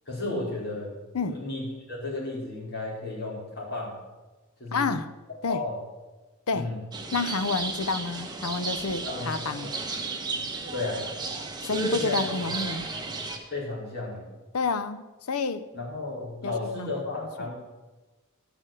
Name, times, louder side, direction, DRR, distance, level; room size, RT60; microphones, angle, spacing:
voice 1, 0.1-0.9 1.2-4.0 4.6-4.9 5.5-5.8 6.5-6.8 9.0-9.4 10.7-11.0 11.6-12.2 13.5-14.3 15.7-17.5, left 2 dB, 50° left, 4.9 m, -33 dB
voice 2, 4.7-5.1 5.4-5.6 6.5-6.7 7.1-9.7 11.6-12.9 14.5-15.7 16.4-16.9 17.4-17.5, left 4 dB, 80° left, 0.6 m, -29 dB
sound 1, 6.9-13.4, right 3 dB, 20° right, 1.2 m, -33 dB
11.5 x 6.6 x 7.5 m
head